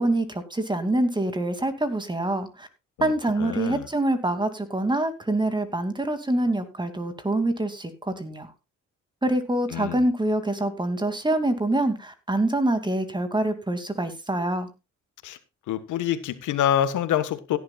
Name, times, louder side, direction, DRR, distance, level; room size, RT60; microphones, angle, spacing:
voice 1, 0.0-2.7 3.0-8.5 9.2-14.7, right 1 dB, 15° right, 2.6 m, -25 dB
voice 2, 3.4-3.8 9.7-10.0 15.2-15.4 15.7-17.6, left 11 dB, 80° left, 1.5 m, -26 dB
16.5 x 11.0 x 2.4 m
cardioid pair, 90°, 30 cm